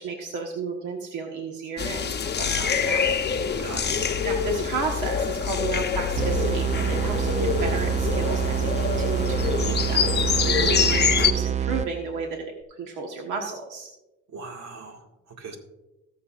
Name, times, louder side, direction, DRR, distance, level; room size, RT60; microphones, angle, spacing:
voice 1, 0.0-3.2 3.8-13.9, right 4 dB, 90° right, 2 dB, 1.3 m, -33 dB
sound 1, 1.8-11.3, left 6 dB, 35° left, 0.8 m, -25 dB
voice 2, 3.6-3.9 10.5-10.8 14.3-15.6, right 3 dB, 65° right, 3 dB, 2.0 m, -38 dB
sound 2, 6.2-12.2, right 9 dB, 25° right, 0.4 m, -26 dB
19.5 x 7.0 x 2.5 m, 1.0 s
cardioid pair, 90°, 30 cm